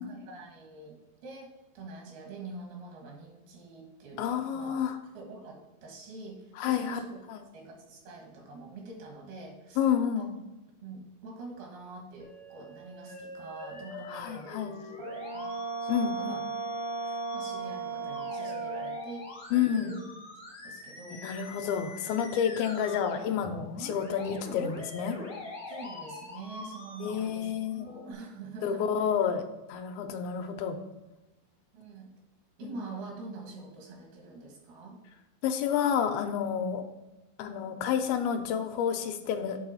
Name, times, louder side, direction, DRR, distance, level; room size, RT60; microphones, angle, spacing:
voice 1, 0.0-4.8 5.1-7.2 7.5-10.3 10.8-16.4 17.0-20.0 20.6-21.3 25.7-27.5 27.9-28.9 30.1-30.3 31.7-32.1 32.6-35.0, right 3 dB, 80° right, 1 dB, 3.5 m, -45 dB
voice 2, 4.2-5.0 6.6-7.0 7.3-7.4 9.8-10.3 14.1-14.7 15.9-16.4 19.5-19.9 21.2-25.2 27.0-27.9 28.6-30.8 32.6-32.8 35.4-36.8 37.4-39.6, left 8 dB, 80° left, 6 dB, 2.5 m, -29 dB
Musical instrument, 12.2-28.1, left 2 dB, 50° left, 0.9 m, -44 dB
Brass instrument, 15.0-19.1, right 5 dB, 65° right, 1.4 m, -35 dB
8.6 x 3.9 x 5.5 m, 1.1 s
omnidirectional pair, 4.3 m